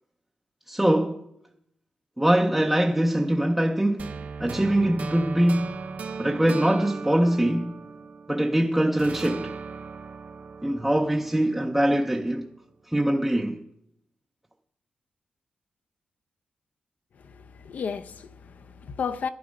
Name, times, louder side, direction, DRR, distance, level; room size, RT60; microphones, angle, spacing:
voice 1, 0.7-1.2 2.2-5.9 6.2-7.8 8.3-9.5 10.6-12.5 12.9-13.6, right 1 dB, 5° right, 0.6 m, -23 dB
sound 1, 4.0-8.5 9.0-12.1, right 5 dB, 50° right, 0.8 m, -38 dB
voice 2, 17.2-19.3, left 6 dB, 55° left, 0.6 m, -33 dB
13.0 x 10.5 x 5.1 m
wide cardioid pair, 155°, 3 cm